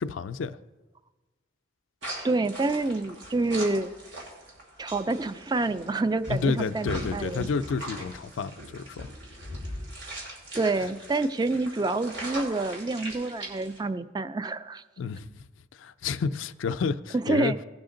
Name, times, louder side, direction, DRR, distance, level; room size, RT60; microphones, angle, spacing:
voice 1, 0.0-0.6 6.3-9.1 10.8-10.9 15.0-15.4 15.7-17.5, left 5 dB, 90° left, 0.4 m, -30 dB
sound 1, 2.0-13.8, right 1 dB, 75° right, 2.9 m, -40 dB
voice 2, 2.2-3.9 4.8-7.5 10.5-14.8 17.2-17.6, right 2 dB, 20° right, 0.4 m, -27 dB
18.0 x 6.1 x 3.8 m
head